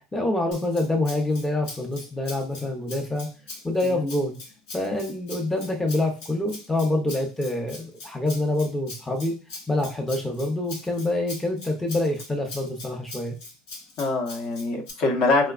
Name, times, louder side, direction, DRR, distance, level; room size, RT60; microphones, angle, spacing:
voice 1, 0.1-3.3 3.6-4.3 4.7-9.3 9.7-13.4, left 1 dB, 10° left, 1 dB, 0.7 m, -26 dB
Rattle (instrument), 0.5-14.9, left 3 dB, 80° left, 1.2 m, -42 dB
voice 2, 3.8-4.2 14.0-15.5, left 3 dB, 55° left, 3 dB, 0.9 m, -24 dB
4.2 x 2.1 x 2.4 m, 0.34 s
supercardioid pair, 120°, 2 cm